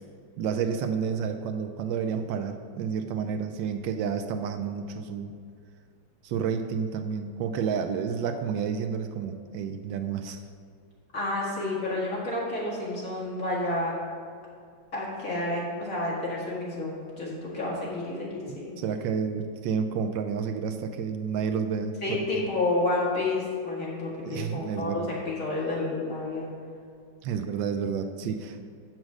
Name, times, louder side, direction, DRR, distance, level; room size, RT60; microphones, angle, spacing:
voice 1, 0.4-5.3 6.2-10.4 18.5-22.5 24.2-25.1 27.2-28.6, right 6 dB, 80° right, 7 dB, 1.2 m, -30 dB
voice 2, 11.1-13.9 14.9-18.8 22.0-26.5, left 2 dB, 45° left, -6 dB, 2.3 m, -30 dB
7.5 x 6.2 x 6.2 m, 2.2 s
omnidirectional pair, 2.1 m